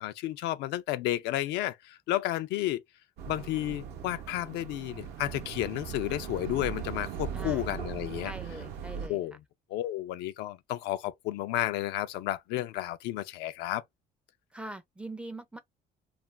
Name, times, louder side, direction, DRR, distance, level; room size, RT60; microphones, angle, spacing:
voice 1, 0.0-2.8 3.3-8.3 9.1-9.4 9.7-13.8, left 14 dB, 85° left, 0.4 m, -32 dB
sound 1, 3.2-9.1, right 8 dB, 80° right, 0.7 m, -39 dB
voice 2, 7.3-7.7 8.2-9.2 14.5-15.6, right 2 dB, 5° right, 0.4 m, -42 dB
2.4 x 2.2 x 3.1 m
cardioid pair, 110°, 17 cm